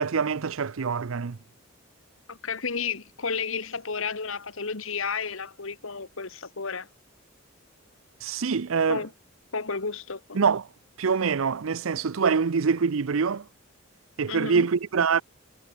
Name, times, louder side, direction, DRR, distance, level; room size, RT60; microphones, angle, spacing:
voice 1, 0.0-1.4 8.2-9.0 10.3-10.7 11.0-13.5 14.2-15.2, right 5 dB, 70° right, 0.6 m, -25 dB
voice 2, 2.3-6.9 8.9-9.1 9.5-10.4 14.3-14.7, left 5 dB, 70° left, 1.6 m, -32 dB
head